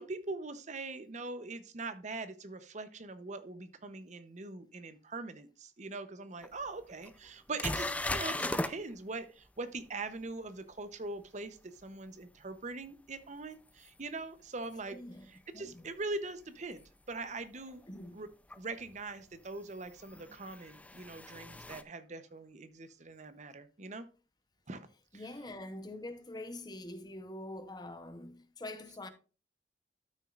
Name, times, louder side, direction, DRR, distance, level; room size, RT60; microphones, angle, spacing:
voice 1, 0.0-15.0 15.3-17.8 18.1-18.3 18.6-24.1 24.7-24.9 25.1-25.2, right 3 dB, 40° right, 0.8 m, -42 dB
sound 1, 6.4-6.5 7.0-7.1 7.6-8.7 13.9-14.0 16.7-16.8 18.5-18.6 20.0-21.8, left 1 dB, 10° left, 0.5 m, -36 dB
voice 2, 14.9-15.8 17.9-18.2 25.1-29.1, left 1 dB, 25° left, 0.9 m, -45 dB
12.5 x 6.3 x 2.5 m
head